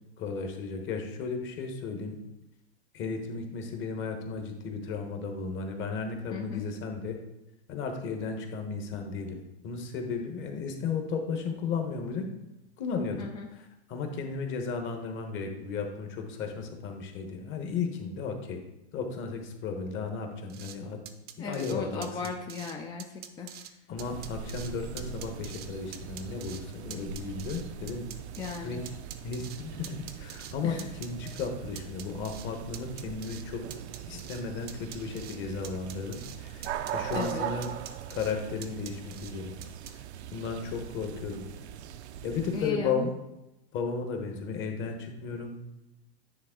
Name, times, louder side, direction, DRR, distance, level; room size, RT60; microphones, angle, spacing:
voice 1, 0.2-2.2 2.9-7.2 7.7-12.3 12.8-13.6 13.9-18.6 18.9-21.0 21.4-22.1 23.9-28.0 28.6-28.8 29.2-33.6 34.1-37.7 38.1-39.6 40.3-41.4 42.2-43.1 43.7-45.6, left 5 dB, 35° left, 4 dB, 1.2 m, -34 dB
voice 2, 6.3-6.6 13.2-13.5 21.4-23.7 28.4-28.8 30.6-30.8 37.1-37.5 42.5-43.1, left 5 dB, 15° left, 2 dB, 0.3 m, -37 dB
sound 1, 20.5-20.8 21.1-21.8 22.0-22.7 23.0-23.7 24.0-24.7 25.0-25.7 25.9-26.6 26.9-28.6 28.9-30.5 30.8-31.5 31.8-32.5 32.7-33.4 33.7-34.4 34.7-35.4 35.6-36.4 36.6-37.3 37.6-38.3 38.6-39.3 39.6-39.9, right 10 dB, 30° right, 0.6 m, -45 dB
sound 2, 24.0-42.7, right 9 dB, 80° right, 0.6 m, -41 dB
9.6 x 3.5 x 3.8 m, 0.93 s
hypercardioid pair, 120°, 33 cm